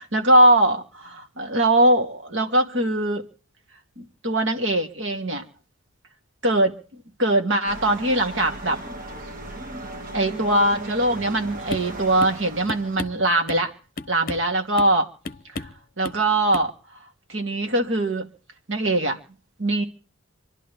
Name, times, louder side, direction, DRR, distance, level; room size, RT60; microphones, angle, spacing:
voice 1, 0.1-3.2 4.0-5.4 6.4-6.8 7.2-8.8 10.1-13.7 14.1-15.1 15.6-15.7 16.0-16.7 17.3-18.3 18.7-19.2 19.6-19.8, right 1 dB, 60° right, 2.7 m, -21 dB
sound 1, 7.7-13.0, right 2 dB, 40° right, 1.8 m, -36 dB
sound 2, 11.7-11.9 12.2-12.4 12.7-13.7 14.0-14.5 14.8-15.0 15.2-15.8 16.0-16.2 16.5-16.7, left 3 dB, 40° left, 0.8 m, -34 dB
27.5 x 11.5 x 3.6 m
head